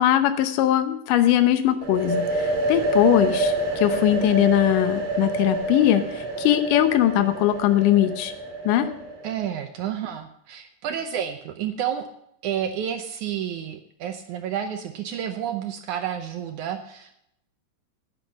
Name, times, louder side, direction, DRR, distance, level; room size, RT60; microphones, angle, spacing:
voice 1, 0.0-8.3 8.7-8.9, left 12 dB, 70° left, 9 dB, 2.3 m, -21 dB
sound 1, 1.8-9.5, right 1 dB, 45° right, 2.4 m, -27 dB
voice 2, 9.2-12.1 12.4-17.2, right 9 dB, 75° right, 6 dB, 1.9 m, -30 dB
10.5 x 10.0 x 5.1 m, 0.74 s
omnidirectional pair, 4.2 m